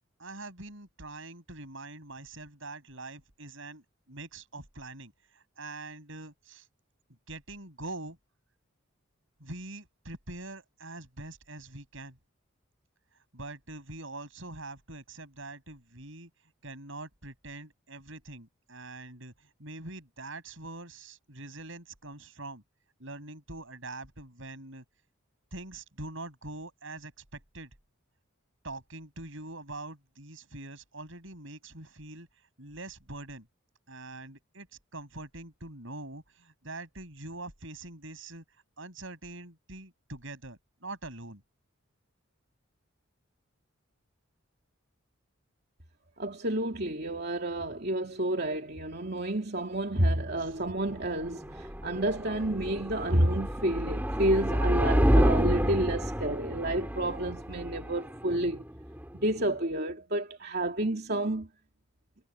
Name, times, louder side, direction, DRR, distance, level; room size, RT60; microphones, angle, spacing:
voice 1, 0.2-6.7 7.3-8.2 9.4-12.2 13.3-16.3 16.6-22.6 23.0-24.8 25.5-27.7 28.6-32.3 32.6-33.5 33.9-34.7 34.9-38.4 38.8-41.4 50.4-50.5, right 2 dB, 65° right, 6.2 m, -44 dB
voice 2, 46.2-58.6 59.1-61.5, right 1 dB, 50° right, 2.9 m, -30 dB
sound 1, 50.6-59.5, equal, 10° right, 3.0 m, -29 dB
head